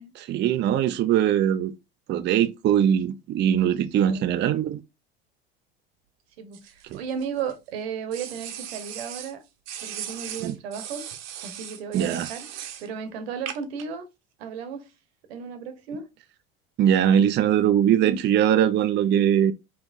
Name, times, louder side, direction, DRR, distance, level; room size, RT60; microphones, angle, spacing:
voice 1, 0.2-1.7 2.1-4.8 6.9-7.0 10.4-10.5 11.9-12.3 16.8-19.5, right 10 dB, 35° right, 0.5 m, -21 dB
voice 2, 4.0-4.4 6.4-9.4 9.8-11.1 11.4-12.5 12.8-14.1 14.4-14.9 15.3-16.1 18.0-18.2, right 6 dB, 80° right, 1.0 m, -34 dB
sound 1, 6.5-7.5 8.1-9.3 9.6-12.9 13.5-13.8, right 10 dB, 55° right, 0.9 m, -38 dB
5.2 x 3.1 x 2.5 m
hypercardioid pair, 75°, 30 cm